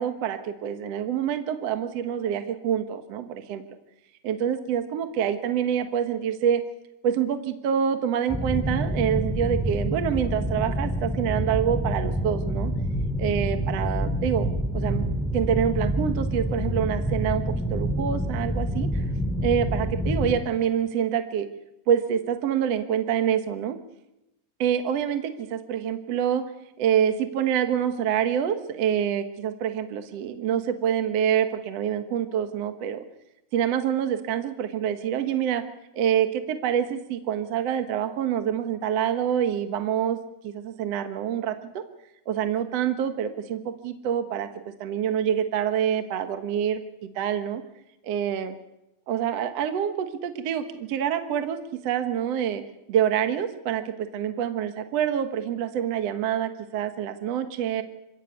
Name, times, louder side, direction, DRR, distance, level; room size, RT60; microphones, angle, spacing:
voice 1, 0.0-3.6 4.2-6.6 7.0-12.7 13.2-14.5 14.7-15.1 15.3-17.4 17.7-19.0 19.4-21.5 21.9-23.8 24.6-26.4 26.8-33.0 33.5-35.6 35.9-40.2 40.4-41.8 42.3-44.5 44.8-46.8 47.2-47.6 48.0-48.5 49.1-51.6 51.8-52.6 52.9-57.8, right 9 dB, 60° right, 8 dB, 1.9 m, -26 dB
sound 1, 8.3-20.4, equal, ahead, 1.7 m, -27 dB
26.5 x 16.0 x 8.3 m, 0.91 s
omnidirectional pair, 4.3 m